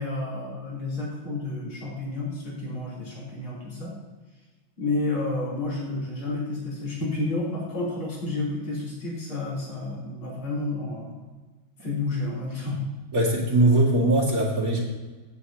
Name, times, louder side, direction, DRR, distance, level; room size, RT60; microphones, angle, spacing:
voice 1, 0.0-3.9 4.8-11.2 11.8-12.8, left 2 dB, 90° left, -6 dB, 4.4 m, -30 dB
voice 2, 13.1-14.8, right 1 dB, 45° right, -2 dB, 2.5 m, -21 dB
16.5 x 8.3 x 2.9 m, 1.3 s
omnidirectional pair, 2.2 m